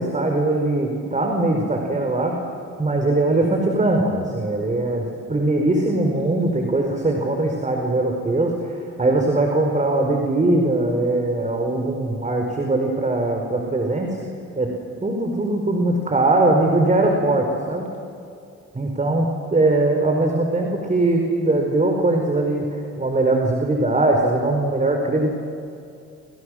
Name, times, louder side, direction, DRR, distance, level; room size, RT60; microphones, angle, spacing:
voice 1, 0.0-2.4 2.8-14.2 14.5-14.7 15.0-17.9 18.7-25.3, right 2 dB, 25° right, 2 dB, 4.5 m, -21 dB
30.0 x 29.0 x 6.5 m, 2.5 s
cardioid pair, 90°, 30 cm